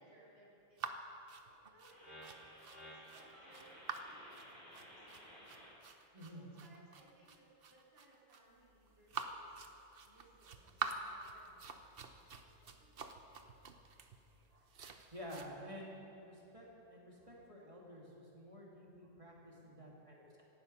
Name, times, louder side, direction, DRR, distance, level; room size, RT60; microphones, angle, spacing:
voice 1, 0.0-2.3 2.7-3.7 4.0-5.7 6.2-9.6 10.0-13.2 19.6-20.1, right 1 dB, 85° right, -6 dB, 4.3 m, -66 dB
sound 1, 0.8-15.5, right 5 dB, 55° right, 0.6 m, -47 dB
sound 2, 1.9-5.7, equal, 25° left, 3.5 m, -55 dB
voice 2, 6.1-6.4 11.0-11.1 12.3-12.4 14.5-14.7 15.1-20.4, equal, 15° right, -3 dB, 2.6 m, -51 dB
17.5 x 12.0 x 5.6 m, 2.8 s
omnidirectional pair, 2.0 m